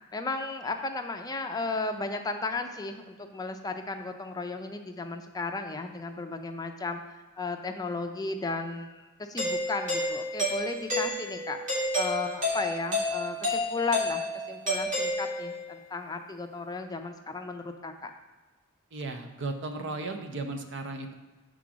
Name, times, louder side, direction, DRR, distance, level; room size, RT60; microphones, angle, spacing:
voice 1, 0.1-18.1, left 3 dB, 20° left, 5 dB, 0.4 m, -35 dB
Doorbell, 9.4-15.7, left 1 dB, 40° right, 2.3 m, -30 dB
voice 2, 18.9-21.1, right 3 dB, 60° right, 5 dB, 0.8 m, -35 dB
7.3 x 3.8 x 6.1 m, 1.2 s
head